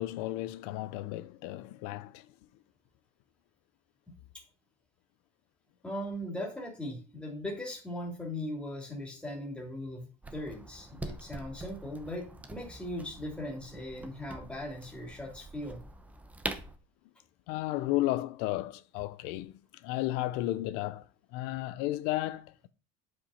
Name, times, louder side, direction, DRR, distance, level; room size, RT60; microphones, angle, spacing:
voice 1, 0.0-2.3 17.5-19.5 19.8-21.0 21.3-22.7, left 16 dB, 80° left, 0.7 m, -33 dB
voice 2, 5.8-15.8, left 1 dB, 5° left, 2.9 m, -39 dB
sound 1, 10.2-16.8, right 2 dB, 10° right, 1.0 m, -44 dB
10.0 x 5.4 x 5.7 m
cardioid pair, 160°, 16 cm